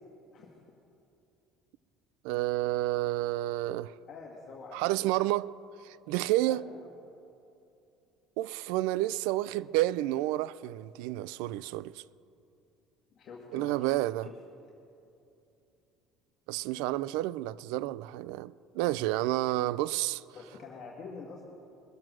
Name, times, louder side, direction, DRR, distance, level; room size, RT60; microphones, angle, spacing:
voice 1, 2.2-4.0 4.7-5.5 5.8-6.6 8.4-12.0 13.5-14.3 16.5-20.2, right 16 dB, 85° right, 0.3 m, -30 dB
voice 2, 4.1-4.8 6.5-6.9 13.2-13.9 14.2-14.4 20.3-21.4, left 4 dB, 45° left, 1.7 m, -46 dB
21.5 x 7.6 x 6.1 m
cardioid pair, 145°, 0 cm